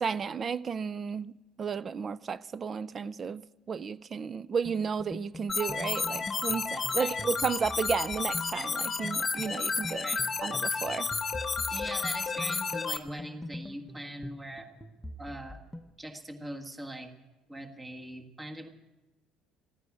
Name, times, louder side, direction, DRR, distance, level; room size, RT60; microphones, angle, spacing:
voice 1, 0.0-1.3 1.6-10.1 10.4-11.1, right 6 dB, 35° right, 0.4 m, -33 dB
sound 1, 4.6-15.9, left 1 dB, 5° left, 0.9 m, -44 dB
sound 2, 5.5-13.0, left 4 dB, 25° left, 1.2 m, -32 dB
voice 2, 11.7-14.7 15.2-15.6 16.0-17.1 17.5-18.7, right 1 dB, 15° right, 1.6 m, -41 dB
15.0 x 9.7 x 9.7 m
cardioid pair, 110°, 0 cm